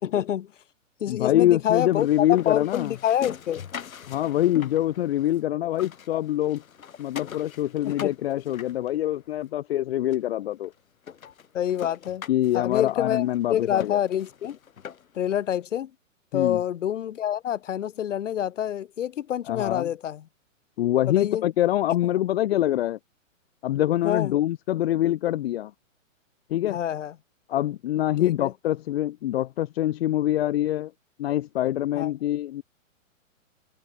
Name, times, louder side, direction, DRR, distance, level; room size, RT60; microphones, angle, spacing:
voice 1, 0.0-0.5 1.0-3.6 7.8-8.1 11.5-12.2 12.5-14.6 15.1-15.9 16.3-20.3 21.1-21.4 24.0-24.4 26.7-27.1 28.2-28.5 31.9-32.1, left 10 dB, 65° left, 3.1 m, -27 dB
voice 2, 1.1-2.9 4.1-6.6 7.0-10.7 12.3-14.0 16.3-16.6 19.5-19.9 20.8-23.0 23.6-25.7 26.5-26.8 27.5-30.9 31.2-32.6, left 13 dB, 50° left, 1.1 m, -25 dB
sound 1, 1.7-5.4 5.7-9.4 10.1-10.2 10.6-10.7 11.0-15.3, left 8 dB, 90° left, 2.1 m, -43 dB
hypercardioid pair, 150°, 40 cm